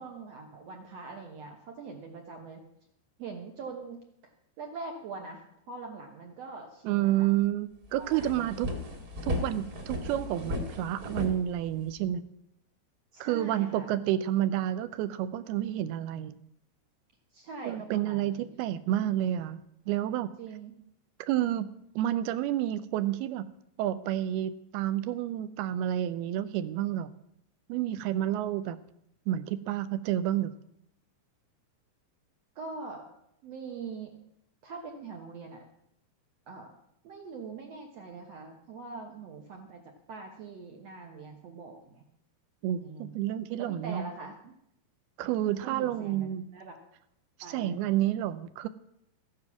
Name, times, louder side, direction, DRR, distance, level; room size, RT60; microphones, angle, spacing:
voice 1, 0.0-2.6 3.2-4.0 4.6-7.3 8.0-8.7 13.1-13.9 17.3-18.5 20.4-20.7 32.5-33.1 33.4-34.1 34.6-35.7 36.5-36.8 37.0-42.0 42.6-43.2 43.6-44.5 45.6-46.8 47.4-47.9, right 4 dB, 70° right, 3 dB, 1.6 m, -43 dB
voice 2, 6.9-8.7 9.2-12.2 13.2-16.4 17.6-20.3 21.3-21.7 22.0-23.5 23.8-27.1 27.7-28.8 29.3-30.5 42.6-44.0 45.2-46.5 47.4-48.7, right 12 dB, 85° right, 12 dB, 2.6 m, -30 dB
sound 1, 7.4-7.5 7.8-12.1, left 1 dB, 35° right, 1.6 m, -35 dB
14.0 x 9.5 x 6.0 m, 0.76 s
omnidirectional pair, 4.5 m